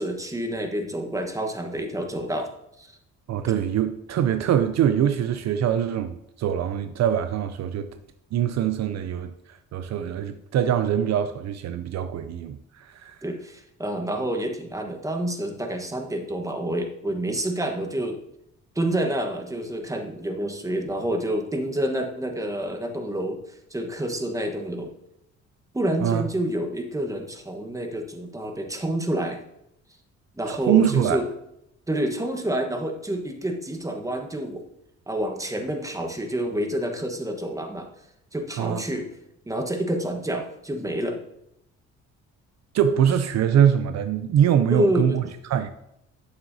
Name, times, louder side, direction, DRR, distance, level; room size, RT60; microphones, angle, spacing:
voice 1, 0.0-2.5 2.8-2.9 13.2-18.2 18.7-24.9 25.7-29.4 30.4-31.2 31.9-34.6 35.1-37.9 38.3-39.1 39.5-41.2 44.7-45.2, right 1 dB, 10° right, 1.2 m, -28 dB
voice 2, 3.3-8.0 8.3-13.2 26.0-26.2 30.5-31.2 38.6-38.8 42.7-45.7, right 9 dB, 60° right, 0.5 m, -23 dB
8.9 x 7.6 x 2.7 m
cardioid pair, 90°, 30 cm